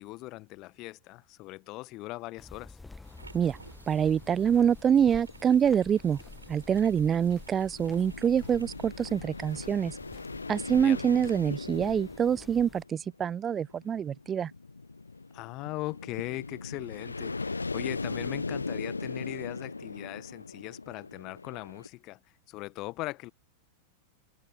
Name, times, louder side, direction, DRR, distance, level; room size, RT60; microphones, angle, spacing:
voice 1, 0.0-2.8 10.7-11.0 15.3-22.2 22.5-23.3, left 20 dB, 40° left, 1.0 m, -39 dB
sound 1, 2.4-12.8, left 3 dB, 10° left, 1.3 m, -50 dB
sound 2, 3.0-8.9, right 3 dB, 80° right, 7.3 m, -54 dB
voice 2, 3.9-6.2 6.5-10.0 10.5-14.5, right 8 dB, 25° right, 0.6 m, -26 dB
sound 3, 4.0-21.9, left 3 dB, 80° left, 0.7 m, -39 dB
figure-of-eight pair, 90°, 0 cm